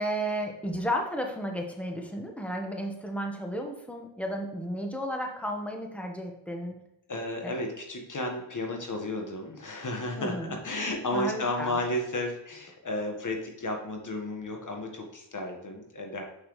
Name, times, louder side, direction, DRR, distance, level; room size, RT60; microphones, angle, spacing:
voice 1, 0.0-6.8 7.4-7.5 10.2-10.6 11.1-11.8, equal, 5° left, 2 dB, 1.4 m, -33 dB
voice 2, 7.1-16.2, left 1 dB, 40° left, 2 dB, 1.6 m, -33 dB
6.4 x 5.8 x 3.2 m, 0.87 s
supercardioid pair, 60°, 46 cm